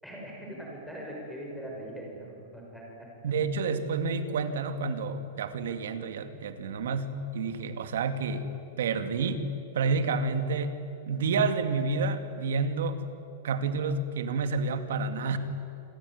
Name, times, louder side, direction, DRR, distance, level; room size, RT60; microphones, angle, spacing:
voice 1, 0.0-3.1, equal, ahead, -2 dB, 5.9 m, -41 dB
voice 2, 3.2-8.5 8.8-10.8 11.1-13.0 13.4-15.4, right 4 dB, 75° right, 9 dB, 2.4 m, -29 dB
27.5 x 21.0 x 9.7 m, 2.6 s
supercardioid pair, 180°, 0 cm